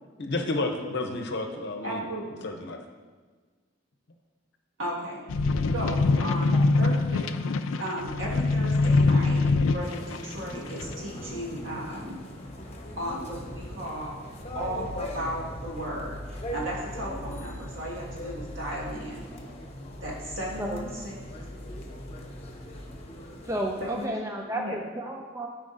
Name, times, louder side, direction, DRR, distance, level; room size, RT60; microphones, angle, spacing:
voice 1, 0.2-2.0 2.4-2.8, left 2 dB, 60° left, 4 dB, 0.7 m, -30 dB
voice 2, 1.8-2.5 4.8-5.2 5.7-7.2 7.8-9.4 9.7-12.2 13.0-14.2 14.5-19.3 20.0-21.2 23.8-24.1 24.5-24.7, right 1 dB, 70° right, -4 dB, 1.8 m, -35 dB
sound 1, 5.3-10.2 10.8-10.9, left 3 dB, 75° left, 0.4 m, -23 dB
voice 3, 6.2-6.6 20.6-20.8 23.4-25.5, right 1 dB, 15° right, 1 dB, 0.4 m, -32 dB
sound 2, 9.8-24.1, equal, 30° left, 0.9 m, -41 dB
sound 3, 13.1-23.0, left 1 dB, 55° right, 1.1 m, -43 dB
12.5 x 4.9 x 2.6 m, 1.5 s
head